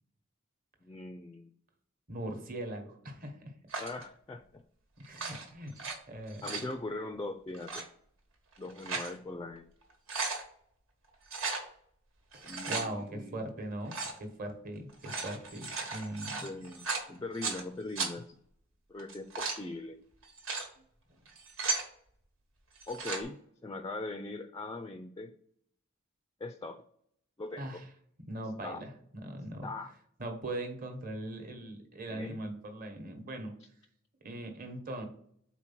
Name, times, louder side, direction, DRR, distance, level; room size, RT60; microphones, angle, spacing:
voice 1, 0.8-1.5 3.8-4.6 6.4-7.9 8.6-9.7 12.4-13.4 16.4-18.4 18.9-20.0 22.9-23.4 23.6-25.4 26.4-26.8 27.4-27.8 28.6-28.8 29.6-29.9 32.1-32.4, left 2 dB, 20° left, 8 dB, 0.3 m, -41 dB
voice 2, 2.1-3.5 5.0-5.7 6.1-6.4 12.3-13.9 14.2-16.5 27.6-27.8 28.3-28.9 29.2-29.7 30.2-33.5 34.2-35.1, right 1 dB, 45° right, 4 dB, 1.1 m, -40 dB
sound 1, 3.7-4.0 5.0-5.9 6.3-6.7 7.5-7.8 8.5-9.1 9.6-9.7 9.9-10.4 11.3-11.6 12.3-12.9 13.9-14.2 14.9-17.6 18.0-18.1 19.0-19.6 20.2-20.7 21.3-21.9 22.8-23.2, right 4 dB, 85° right, 1.4 m, -36 dB
4.5 x 4.1 x 5.7 m, 0.66 s
head